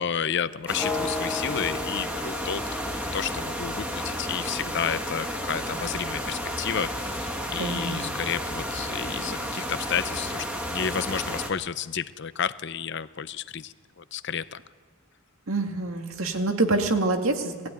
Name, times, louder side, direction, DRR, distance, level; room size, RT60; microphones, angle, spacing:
voice 1, 0.0-2.8 3.1-14.6, left 7 dB, 55° left, 14 dB, 0.6 m, -31 dB
sound 1, 0.7-11.5, equal, 5° right, 1.8 m, -32 dB
sound 2, 0.8-4.7, left 3 dB, 10° left, 1.0 m, -36 dB
voice 2, 7.6-8.2 15.5-17.7, right 2 dB, 75° right, 4 dB, 2.1 m, -26 dB
20.0 x 15.0 x 9.3 m, 1.5 s
head